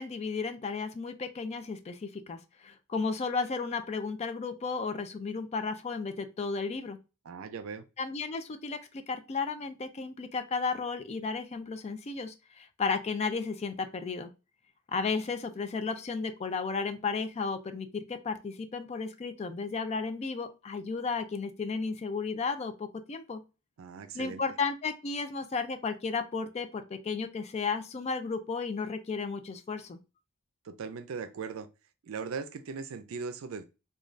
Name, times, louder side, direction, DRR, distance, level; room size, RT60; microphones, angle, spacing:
voice 1, 0.0-7.0 8.0-14.3 14.9-23.4 24.1-30.0, left 4 dB, 30° left, 0.3 m, -34 dB
voice 2, 7.3-7.8 23.8-24.4 30.6-31.7 32.0-33.6, right 5 dB, 75° right, 0.4 m, -39 dB
3.2 x 2.3 x 2.4 m
head